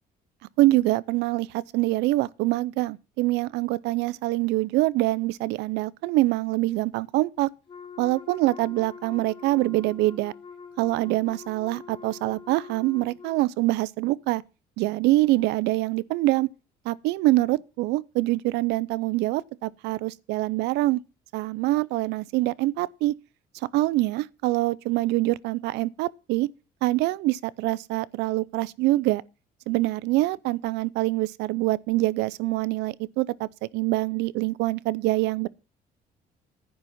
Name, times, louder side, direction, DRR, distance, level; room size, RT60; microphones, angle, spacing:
voice 1, 0.6-7.5 8.0-10.3 10.8-14.4 14.8-16.5 16.9-21.0 21.3-23.1 23.7-26.5 26.8-29.2 29.7-33.5 33.7-35.5, right 18 dB, 90° right, 0.5 m, -25 dB
Wind instrument woodwind instrument, 7.7-13.4, left 5 dB, 35° left, 2.9 m, -44 dB
10.0 x 8.0 x 5.7 m
cardioid pair, 110°, 17 cm